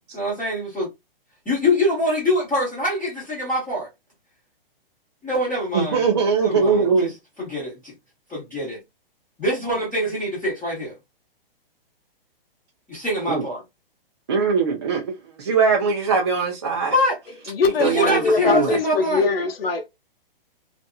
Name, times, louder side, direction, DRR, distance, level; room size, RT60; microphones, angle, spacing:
voice 1, 0.1-0.9 1.5-3.9 5.2-6.0 6.4-7.1 7.4-7.9 8.3-8.8 9.4-10.9 12.9-13.6 16.9-17.2 17.8-19.2, left 1 dB, 10° left, 0.7 m, -24 dB
voice 2, 5.7-7.1 13.3-13.5 14.3-16.9 17.8-18.7, right 5 dB, 30° right, 0.4 m, -21 dB
voice 3, 17.5-19.9, left 4 dB, 75° left, 0.8 m, -22 dB
2.7 x 2.4 x 2.2 m
hypercardioid pair, 165°, 29 cm